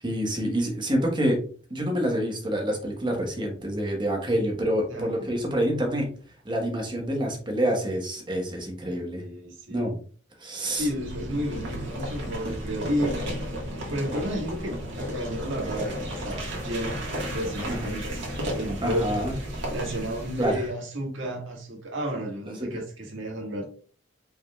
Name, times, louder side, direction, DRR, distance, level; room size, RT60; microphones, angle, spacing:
voice 1, 0.0-1.4 1.7-6.1 6.4-9.2 9.7-9.9 10.4-10.9 17.7-17.9 18.8-19.4 20.4-20.6 22.6-22.7, equal, 25° right, 1 dB, 1.2 m, -27 dB
voice 2, 4.9-5.3 9.1-10.0 10.7-13.5 13.9-17.0 17.3-19.1 19.7-23.7, equal, 85° right, -1 dB, 1.7 m, -32 dB
sound 1, 10.7-20.7, equal, 70° right, 1.5 m, -33 dB
5.2 x 3.9 x 2.3 m, 0.42 s
head